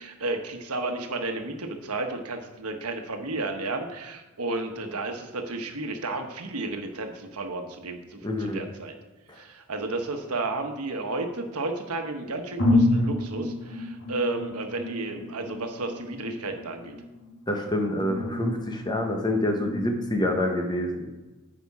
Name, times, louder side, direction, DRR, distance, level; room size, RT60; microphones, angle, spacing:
voice 1, 0.0-8.9 9.4-17.0, right 2 dB, 85° right, 5 dB, 1.2 m, -32 dB
voice 2, 8.2-8.6 9.3-9.4 17.5-21.2, left 1 dB, 20° left, 3 dB, 1.1 m, -27 dB
sound 1, 10.2-11.5 12.1-12.2 12.6-20.1, left 2 dB, 55° left, 1.7 m, -30 dB
9.6 x 5.1 x 4.8 m, 1.1 s
head